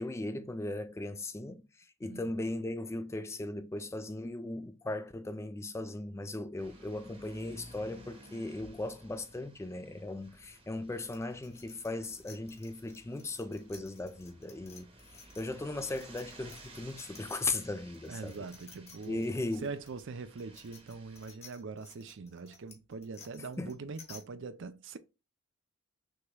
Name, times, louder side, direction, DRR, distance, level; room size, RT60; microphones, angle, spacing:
voice 1, 0.0-1.6 2.0-18.3 19.0-19.7 23.6-23.7, left 2 dB, 10° left, 0.3 m, -37 dB
voice 2, 2.0-2.4 18.1-25.0, right 4 dB, 55° right, 0.5 m, -43 dB
sound 1, 6.6-21.4, right 1 dB, 25° right, 0.9 m, -55 dB
sound 2, 11.0-17.6 17.9-24.2, left 5 dB, 30° left, 1.2 m, -55 dB
6.3 x 2.9 x 2.3 m
head